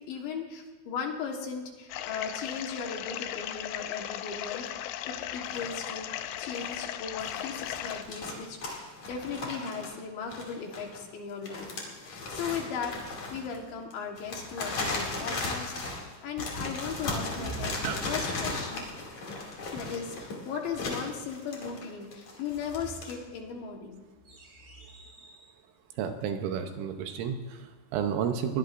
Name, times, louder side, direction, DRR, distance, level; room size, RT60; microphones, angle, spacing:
voice 1, 0.0-6.1 6.4-11.7 12.0-18.9 19.7-24.0, left 6 dB, 70° left, 1 dB, 3.5 m, -37 dB
sound 1, 1.9-8.0, left 11 dB, 85° left, 2.5 m, -37 dB
sound 2, 5.4-5.9 6.2-6.8 7.2-11.1 11.4-23.1, left 3 dB, 40° left, 3.2 m, -37 dB
sound 3, 16.9-18.3 22.3-25.6, right 4 dB, 45° right, 4.1 m, -47 dB
voice 2, 26.0-28.6, right 8 dB, 80° right, 6 dB, 3.2 m, -31 dB
22.0 x 19.5 x 2.6 m, 1.2 s
omnidirectional pair, 5.9 m